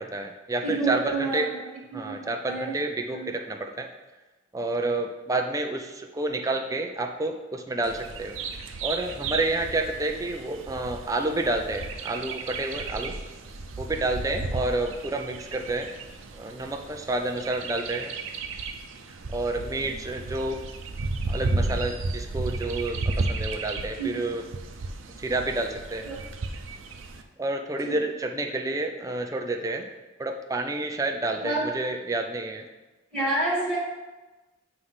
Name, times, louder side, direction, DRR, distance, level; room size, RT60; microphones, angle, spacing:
voice 1, 0.0-1.5 1.9-3.9 4.5-8.4 8.8-13.2 13.8-15.9 16.3-18.1 19.3-20.6 21.3-24.4 25.2-26.1 27.4-29.9 30.2-32.7, right 2 dB, 15° right, 3 dB, 0.5 m, -29 dB
voice 2, 0.6-1.6 1.9-2.2 2.5-2.7 3.1-3.3 24.0-24.2 26.0-26.2 27.8-28.0 31.4-31.6 33.1-33.8, right 2 dB, 10° left, -6 dB, 2.0 m, -28 dB
Bird vocalization bird call bird song, 7.8-27.2, right 3 dB, 90° right, 0.6 m, -34 dB
7.5 x 3.3 x 5.6 m, 1.1 s
head